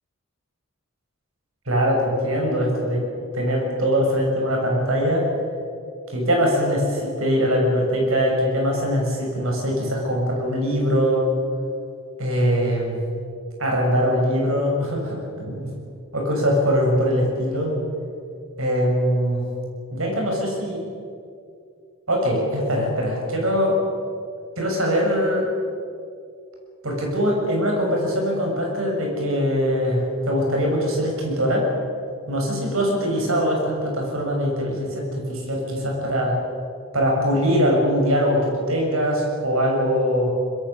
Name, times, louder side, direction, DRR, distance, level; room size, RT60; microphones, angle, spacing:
voice 1, 1.7-3.0 3.3-5.3 6.1-11.3 12.2-13.0 13.6-15.7 16.1-17.7 18.6-19.5 19.9-20.8 22.1-23.8 24.6-25.5 26.8-31.6 32.3-36.4 36.9-40.3, equal, 75° right, 0 dB, 6.9 m, -22 dB
24.0 x 21.5 x 7.2 m, 2.4 s
head